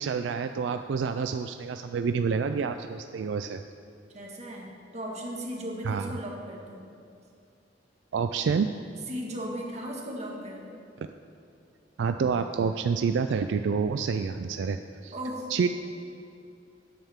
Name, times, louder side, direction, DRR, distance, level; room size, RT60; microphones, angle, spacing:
voice 1, 0.0-3.6 5.8-6.1 8.1-8.7 12.0-15.1 15.5-15.7, right 5 dB, 75° right, 8 dB, 0.3 m, -28 dB
voice 2, 4.1-6.9 9.1-10.8 15.1-15.5, equal, 40° right, -1 dB, 1.7 m, -37 dB
12.5 x 8.9 x 3.6 m, 2.6 s
head